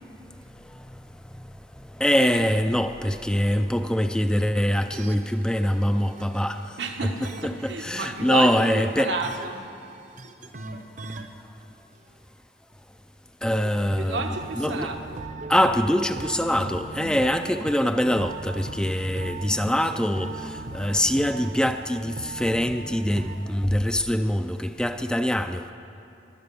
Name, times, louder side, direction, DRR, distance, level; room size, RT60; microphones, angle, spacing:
voice 1, 1.9-6.8 7.0-7.1 7.4-9.1 13.4-14.3 14.6-14.9 15.5-25.7, equal, 5° left, 0.4 m, -24 dB
sound 1, 4.4-11.3 11.9-12.0 13.9-23.4, right 2 dB, 45° right, 0.8 m, -39 dB
voice 2, 6.8-9.6 14.0-15.3 16.9-17.2, right 3 dB, 80° right, 1.3 m, -31 dB
21.0 x 8.7 x 6.9 m
head